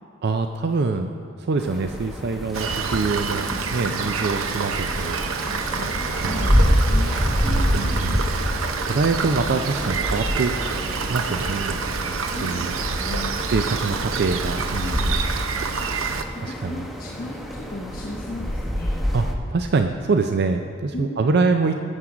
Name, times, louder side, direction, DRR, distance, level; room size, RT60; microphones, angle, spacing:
voice 1, 0.2-5.1 5.8-5.9 6.2-6.7 7.1-8.2 8.9-10.5 11.0-11.8 12.4-12.7 13.5-15.2 16.4-16.9 19.1-21.7, right 4 dB, 55° right, 6 dB, 0.4 m, -25 dB
sound 1, 1.6-19.3, equal, ahead, 0.8 m, -27 dB
Rain, 2.5-16.2, right 5 dB, 90° right, 0.7 m, -27 dB
voice 2, 3.8-4.2 5.4-7.1 7.4-8.2 12.2-12.6 12.9-13.5 14.8-14.9 16.4-19.0 20.9-21.4, left 1 dB, 50° left, -3 dB, 1.0 m, -36 dB
14.0 x 7.4 x 4.9 m, 2.6 s
head